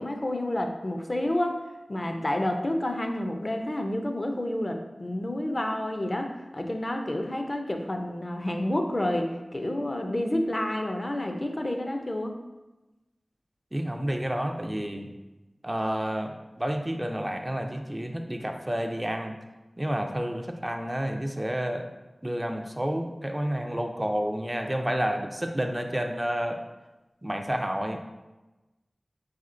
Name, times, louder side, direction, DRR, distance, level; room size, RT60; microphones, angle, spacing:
voice 1, 0.0-12.3, left 1 dB, 40° left, 4 dB, 0.5 m, -29 dB
voice 2, 13.7-15.1 15.6-19.4 19.8-21.9 22.2-26.6 27.2-28.0, equal, 20° right, 4 dB, 0.4 m, -30 dB
4.2 x 4.2 x 2.5 m, 1.1 s
wide cardioid pair, 55°, 0 cm